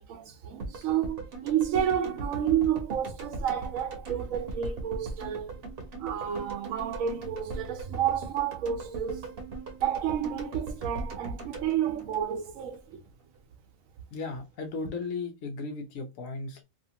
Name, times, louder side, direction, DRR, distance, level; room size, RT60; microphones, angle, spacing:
voice 1, 0.0-5.5 6.0-9.2 9.8-13.0, right 9 dB, 80° right, 1.0 m, -30 dB
sound 1, 0.6-12.8 13.1-13.2, right 3 dB, 50° right, 0.9 m, -39 dB
voice 2, 14.1-16.6, left 3 dB, 80° left, 1.1 m, -36 dB
2.8 x 2.6 x 2.7 m
omnidirectional pair, 1.4 m